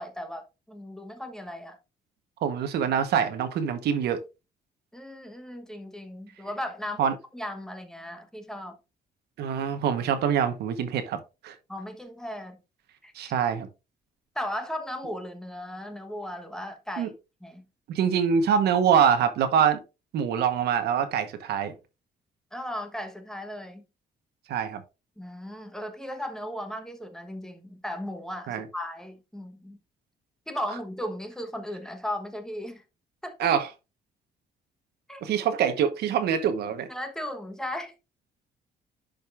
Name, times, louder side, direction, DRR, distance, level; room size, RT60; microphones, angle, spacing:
voice 1, 0.0-1.8 4.9-8.8 11.7-12.6 13.0-13.1 14.3-17.1 17.4-17.6 22.5-23.8 25.2-29.8 30.5-32.8 33.2-33.5 35.1-35.2 36.9-37.9, left 1 dB, 5° left, 1.1 m, -36 dB
voice 2, 2.4-4.2 7.0-7.1 9.4-11.5 13.1-13.7 17.0-17.1 17.9-19.8 20.1-21.7 24.5-24.8 28.5-28.6 33.4-33.7 35.2-36.9, right 8 dB, 85° right, 1.1 m, -24 dB
10.5 x 5.2 x 2.5 m
cardioid pair, 130°, 16 cm